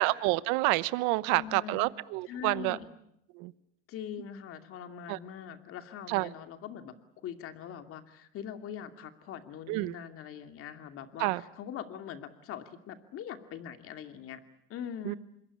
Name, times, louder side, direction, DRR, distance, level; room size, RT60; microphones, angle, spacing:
voice 1, 0.0-2.8 3.4-3.5 5.1-5.2 6.1-6.3 9.7-9.9 11.2-11.4 15.1-15.2, right 21 dB, 70° right, 17 dB, 1.0 m, -28 dB
voice 2, 1.3-1.9 2.2-2.9 3.9-6.9 7.2-14.4 14.7-15.2, left 9 dB, 50° left, 8 dB, 2.6 m, -42 dB
26.5 x 22.0 x 8.5 m, 0.74 s
supercardioid pair, 120°, 29 cm